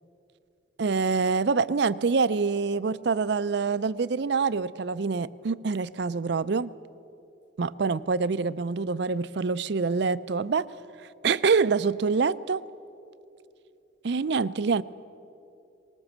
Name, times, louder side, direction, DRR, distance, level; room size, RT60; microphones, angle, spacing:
voice 1, 0.8-6.7 7.6-10.6 11.2-12.6 14.0-14.8, right 4 dB, 55° right, 17 dB, 0.4 m, -25 dB
19.5 x 19.5 x 7.3 m, 2.7 s
head